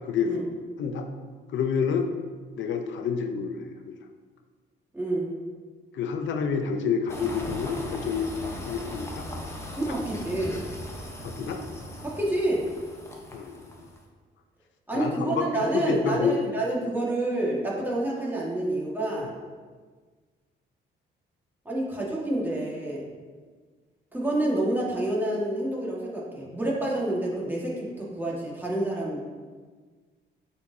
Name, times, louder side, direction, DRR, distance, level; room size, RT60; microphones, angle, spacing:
voice 1, 1.5-2.1 2.6-4.0 5.9-8.4 8.7-9.3 9.9-10.0 11.2-11.6 13.3-13.9 14.9-16.4, left 6 dB, 70° left, 6 dB, 0.7 m, -28 dB
voice 2, 4.9-5.3 9.8-10.6 12.0-12.6 14.9-19.3 21.7-23.0 24.1-29.2, right 1 dB, 10° right, -5 dB, 1.8 m, -28 dB
sound 1, 7.1-14.0, left 1 dB, 15° left, 1.0 m, -38 dB
8.4 x 4.4 x 2.8 m, 1.5 s
cardioid pair, 90°, 20 cm